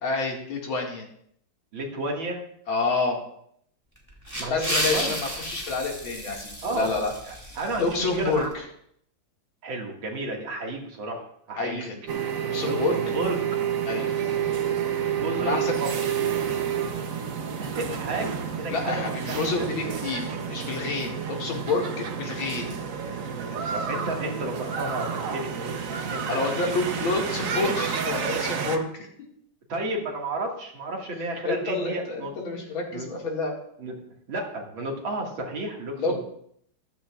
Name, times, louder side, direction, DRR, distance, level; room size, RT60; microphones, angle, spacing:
voice 1, 0.0-1.1 2.7-3.2 4.5-7.1 7.8-8.6 11.6-12.0 12.5-13.0 13.8-14.2 15.4-15.8 18.7-22.8 26.3-29.1 31.4-33.5 36.0-36.2, left 3 dB, 80° left, -1 dB, 2.9 m, -28 dB
voice 2, 1.7-2.4 4.4-5.1 6.6-6.9 7.3-8.5 9.6-11.9 12.6-13.4 15.1-16.0 17.6-19.0 19.3-19.4 23.1-23.2 23.5-26.8 29.7-32.3 32.9-33.1 33.8-33.9 34.3-36.2, right 1 dB, 75° right, 0 dB, 2.7 m, -32 dB
sound 1, 4.0-8.5, equal, 10° right, 2.4 m, -33 dB
sound 2, 12.1-28.8, right 7 dB, 50° right, 1.1 m, -29 dB
14.0 x 12.5 x 2.4 m, 0.68 s
omnidirectional pair, 2.2 m